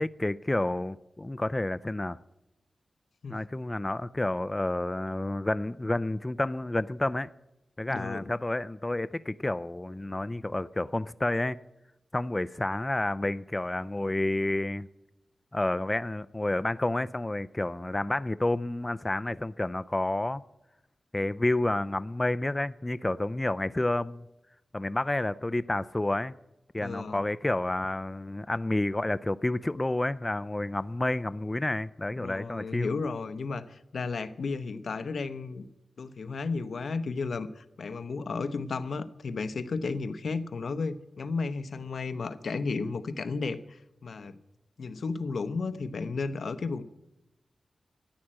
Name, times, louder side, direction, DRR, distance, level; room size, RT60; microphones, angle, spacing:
voice 1, 0.0-2.2 3.3-7.3 7.8-11.6 12.1-14.9 15.5-20.4 21.1-24.3 24.7-26.3 26.7-32.9, left 1 dB, 20° left, 0.4 m, -30 dB
voice 2, 7.9-8.2 26.8-27.2 32.2-35.7 36.0-44.4 44.8-46.8, left 4 dB, 75° left, 0.9 m, -33 dB
14.5 x 10.0 x 7.6 m
wide cardioid pair, 75°, 0 cm